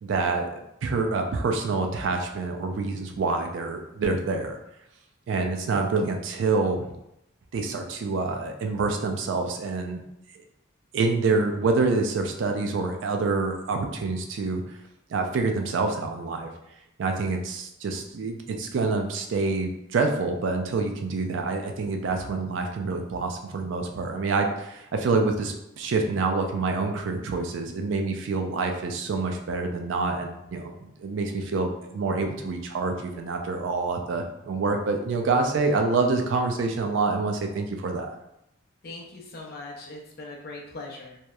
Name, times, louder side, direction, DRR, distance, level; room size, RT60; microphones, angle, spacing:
voice 1, 0.0-4.6 5.3-6.9 7.5-10.0 10.9-14.6 15.1-16.5 17.0-38.1, right 3 dB, 60° right, 4 dB, 0.3 m, -27 dB
voice 2, 38.8-41.2, left 2 dB, 45° left, -1 dB, 0.5 m, -40 dB
2.8 x 2.0 x 2.2 m, 0.81 s
head